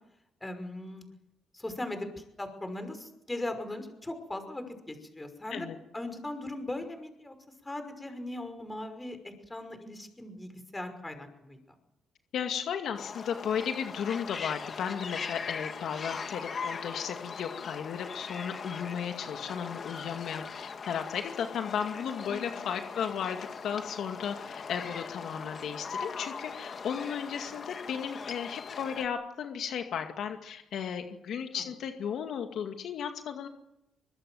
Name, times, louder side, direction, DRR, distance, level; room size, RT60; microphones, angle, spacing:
voice 1, 0.4-1.1 1.5-2.1 2.4-5.7 5.9-7.3 7.6-9.2 9.5-11.6 22.3-22.6 31.5-31.6, left 1 dB, 15° left, 8 dB, 5.6 m, -39 dB
voice 2, 12.3-23.4 23.6-33.5, left 8 dB, 70° left, 5 dB, 2.2 m, -35 dB
sound 1, 12.9-29.1, left 5 dB, 45° left, 2.4 m, -40 dB
24.0 x 22.0 x 7.9 m, 0.87 s
cardioid pair, 90°, 0 cm